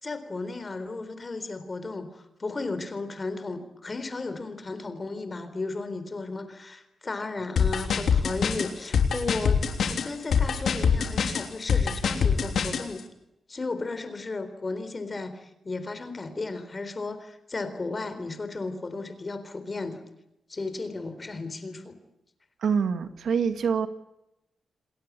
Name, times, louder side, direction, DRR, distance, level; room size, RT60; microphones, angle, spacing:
voice 1, 0.0-13.0 13.5-20.0 20.5-22.0, left 3 dB, 25° left, 10 dB, 3.9 m, -34 dB
sound 1, 7.6-12.8, left 6 dB, 65° left, 3.3 m, -24 dB
voice 2, 22.6-23.9, right 6 dB, 70° right, 9 dB, 2.1 m, -25 dB
29.0 x 21.0 x 8.4 m, 0.89 s
wide cardioid pair, 155°, 0 cm